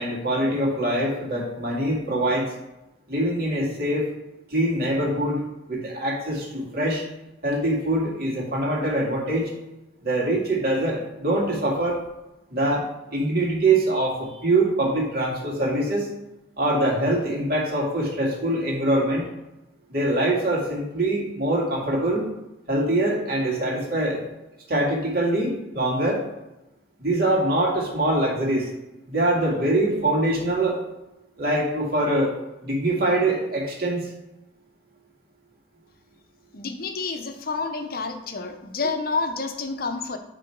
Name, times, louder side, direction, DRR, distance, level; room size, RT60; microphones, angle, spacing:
voice 1, 0.0-2.5 3.1-4.1 4.5-5.4 5.7-7.0 7.4-9.5 10.0-12.0 12.5-12.9 13.1-16.1 16.6-19.2 19.9-22.3 22.7-24.2 24.7-26.2 27.0-28.7 29.1-30.8 31.4-32.3 32.6-34.1, right 1 dB, 50° right, -4 dB, 2.4 m, -23 dB
voice 2, 36.5-40.2, left 4 dB, 50° left, 6 dB, 0.7 m, -29 dB
10.0 x 3.8 x 4.6 m, 0.96 s
head